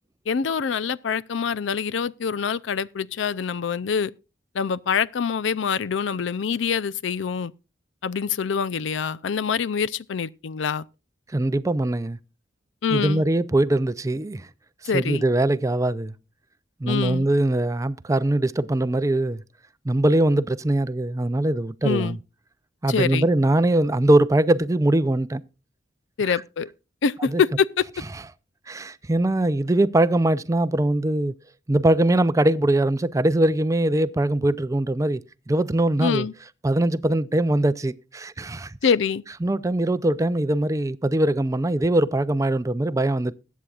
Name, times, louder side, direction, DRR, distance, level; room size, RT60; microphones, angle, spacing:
voice 1, 0.3-4.1 4.5-7.5 8.0-10.9 12.8-13.2 14.9-15.2 16.9-17.3 21.8-22.2 22.9-23.2 26.2-26.7 27.0-27.8 36.0-36.3 38.8-39.2, left 6 dB, 75° left, 0.5 m, -25 dB
voice 2, 11.3-12.2 12.9-14.5 14.8-16.1 16.8-19.4 19.8-22.2 22.8-25.4 26.3-26.4 27.2-27.4 28.7-31.3 31.7-36.3 36.6-38.8 39.4-43.3, right 1 dB, 15° right, 0.4 m, -22 dB
20.5 x 8.3 x 2.4 m
head